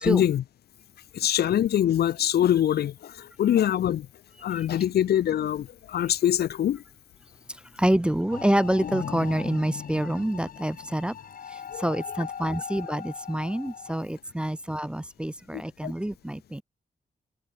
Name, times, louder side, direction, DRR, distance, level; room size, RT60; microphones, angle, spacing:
voice 1, 0.0-0.4 1.1-4.1 4.4-6.8 11.7-12.0 15.5-15.9, left 11 dB, 75° left, 0.5 m, -24 dB
voice 2, 7.8-11.1 11.8-16.6, right 1 dB, 5° right, 0.4 m, -27 dB
sound 1, 8.3-14.0, left 8 dB, 55° left, 1.4 m, -38 dB
wide cardioid pair, 180°, 17 cm